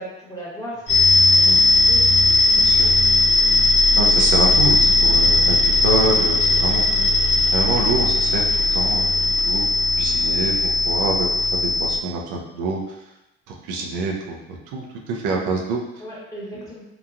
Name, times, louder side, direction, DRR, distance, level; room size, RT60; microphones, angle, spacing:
voice 1, 0.0-2.0 6.9-7.0 16.0-16.8, equal, 10° left, -7 dB, 1.1 m, -37 dB
sound 1, 0.9-12.0, left 2 dB, 85° left, 1.1 m, -17 dB
voice 2, 2.6-2.9 4.0-6.8 7.5-8.4 8.7-9.6 10.0-13.0 13.5-14.4 14.7-15.8, right 3 dB, 80° right, -1 dB, 0.6 m, -26 dB
2.9 x 2.3 x 2.4 m, 0.93 s
supercardioid pair, 80°, 30 cm